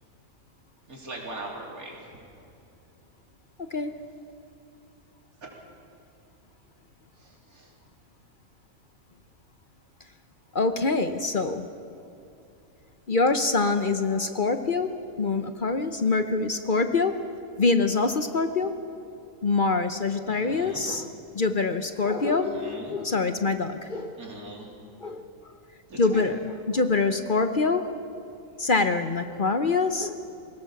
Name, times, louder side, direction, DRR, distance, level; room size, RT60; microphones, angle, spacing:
voice 1, 0.9-2.2 5.4-5.5 7.2-7.7 20.2-20.8 22.4-22.9 23.9-24.7 25.9-26.2, right 2 dB, 90° right, -1 dB, 3.7 m, -41 dB
voice 2, 10.5-11.7 13.1-14.9 15.2-17.1 17.6-18.7 19.4-21.1 21.3-24.2 25.0-25.3 25.9-27.9 28.6-30.1, left 3 dB, 45° left, 8 dB, 0.9 m, -25 dB
22.0 x 18.0 x 7.1 m, 2.8 s
omnidirectional pair, 1.5 m